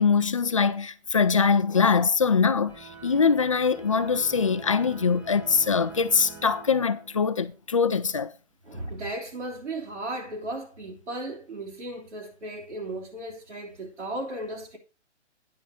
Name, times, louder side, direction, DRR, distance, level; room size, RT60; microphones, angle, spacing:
voice 1, 0.0-8.3, left 5 dB, 30° left, 0.4 m, -23 dB
sound 1, 2.7-7.5, right 5 dB, 10° right, 0.9 m, -45 dB
voice 2, 8.6-14.8, right 1 dB, 75° right, 3.0 m, -35 dB
9.5 x 6.8 x 4.2 m
hypercardioid pair, 150°, 35 cm